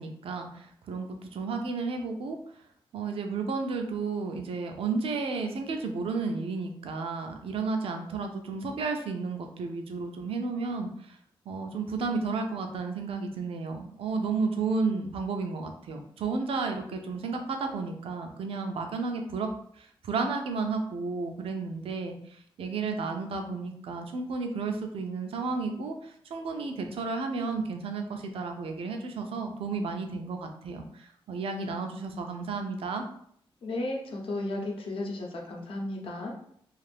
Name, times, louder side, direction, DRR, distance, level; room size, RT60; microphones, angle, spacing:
voice 1, 0.0-2.4 2.9-11.2 11.5-19.5 19.7-33.0, right 4 dB, 85° right, 4 dB, 0.4 m, -32 dB
voice 2, 33.6-36.3, left 2 dB, 75° left, -1 dB, 0.7 m, -34 dB
2.5 x 2.4 x 3.3 m, 0.65 s
cardioid pair, 95°, 9 cm